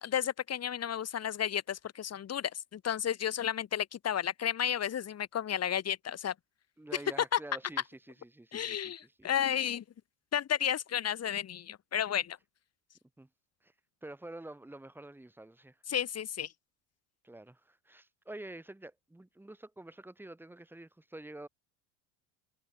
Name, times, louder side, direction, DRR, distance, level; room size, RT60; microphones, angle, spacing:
voice 1, 0.0-6.3 7.3-7.4 8.5-9.8 10.3-12.4 15.9-16.5, left 9 dB, 35° left, 2.5 m, -32 dB
voice 2, 6.8-9.3 13.2-13.3 13.6-13.7 14.0-15.8 17.2-21.5, right 1 dB, 5° right, 2.2 m, -48 dB
supercardioid pair, 115°, 44 cm